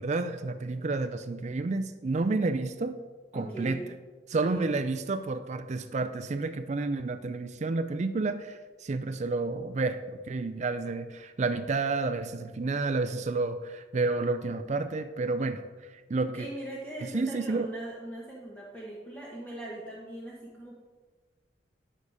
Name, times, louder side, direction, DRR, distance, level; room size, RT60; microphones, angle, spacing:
voice 1, 0.0-3.0 3.3-3.8 4.3-15.6 16.1-16.5 17.1-17.7, right 3 dB, 40° right, 9 dB, 0.4 m, -30 dB
voice 2, 3.3-3.9 4.5-4.8 16.3-20.8, right 1 dB, 10° left, -5 dB, 1.3 m, -40 dB
11.0 x 6.6 x 4.8 m, 1.4 s
head